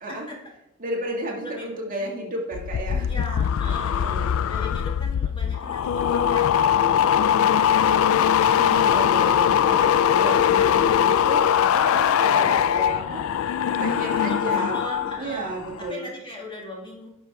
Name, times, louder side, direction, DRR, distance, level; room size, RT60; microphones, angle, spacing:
voice 1, 0.8-3.1 3.9-4.3 8.5-13.2 13.8-14.8 15.2-16.1, right 1 dB, 40° right, -1 dB, 1.8 m, -32 dB
voice 2, 1.4-2.1 3.1-4.0 4.5-8.5 10.5-10.8 12.2-12.7 14.2-15.5 15.8-17.1, left 1 dB, 25° left, -1 dB, 1.9 m, -39 dB
sound 1, 2.5-15.2 15.5-15.9, left 9 dB, 70° left, 0.3 m, -21 dB
10.0 x 6.2 x 3.4 m, 0.85 s
head